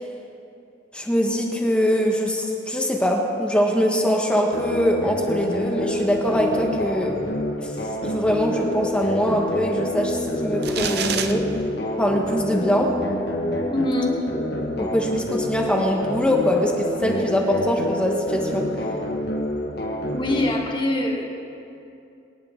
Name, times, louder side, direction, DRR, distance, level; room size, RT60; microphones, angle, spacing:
voice 1, 0.9-7.1 7.6-11.5 12.0-12.9 14.8-18.7, equal, 5° left, 0 dB, 1.1 m, -23 dB
sound 1, 4.5-20.5, left 1 dB, 55° left, 1.3 m, -27 dB
sound 2, 10.6-11.3, right 7 dB, 55° right, 0.7 m, -27 dB
voice 2, 13.7-14.2 20.1-21.3, left 1 dB, 25° left, 0 dB, 1.5 m, -24 dB
24.0 x 10.0 x 3.7 m, 2.6 s
head